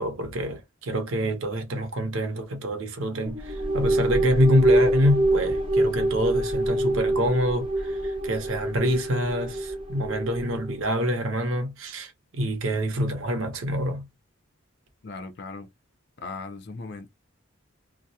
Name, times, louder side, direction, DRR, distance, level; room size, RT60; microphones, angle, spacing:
voice 1, 0.0-14.1, equal, 65° right, 0.7 m, -26 dB
sound 1, 3.3-10.8, right 1 dB, 25° right, 0.5 m, -25 dB
voice 2, 15.0-15.7 16.2-17.1, left 3 dB, 50° left, 0.4 m, -38 dB
2.2 x 2.0 x 2.7 m
head